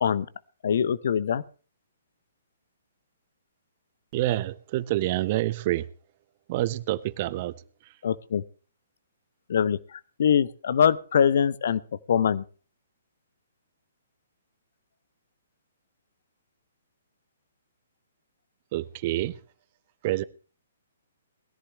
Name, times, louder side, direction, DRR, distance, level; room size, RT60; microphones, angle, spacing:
voice 1, 0.6-1.4 8.0-8.4 9.5-12.4, left 8 dB, 50° left, 0.8 m, -23 dB
voice 2, 4.1-5.9 6.5-7.5 7.8-7.9 18.7-19.4 20.0-20.2, right 15 dB, 35° right, 0.7 m, -27 dB
20.0 x 14.5 x 3.1 m
figure-of-eight pair, 125°, 0 cm